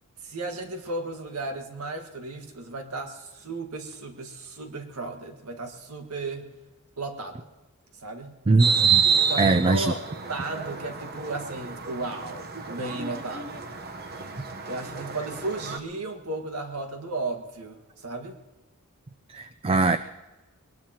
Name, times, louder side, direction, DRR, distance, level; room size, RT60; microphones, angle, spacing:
voice 1, 0.2-6.5 7.0-7.5 7.9-8.4 9.2-10.0 10.3-13.7 14.7-18.4, right 2 dB, 85° right, 4 dB, 1.7 m, -35 dB
voice 2, 8.5-9.0 9.4-9.9 19.3-20.0, right 3 dB, 25° right, 11 dB, 0.4 m, -21 dB
sound 1, 8.6-15.8, right 6 dB, 45° right, 1.0 m, -28 dB
22.5 x 20.0 x 2.9 m, 1.1 s
head